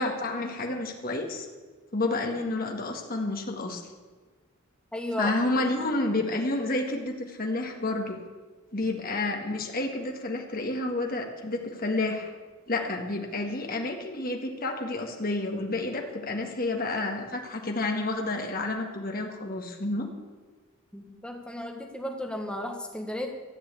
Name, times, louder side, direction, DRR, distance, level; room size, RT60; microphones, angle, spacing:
voice 1, 0.0-1.5 1.9-3.8 5.2-8.2 8.7-12.3 12.7-20.1, left 2 dB, 45° left, 3 dB, 1.9 m, -30 dB
voice 2, 4.9-5.3 20.9-23.3, left 1 dB, 5° left, 2 dB, 1.6 m, -34 dB
14.0 x 7.7 x 8.6 m, 1.4 s
head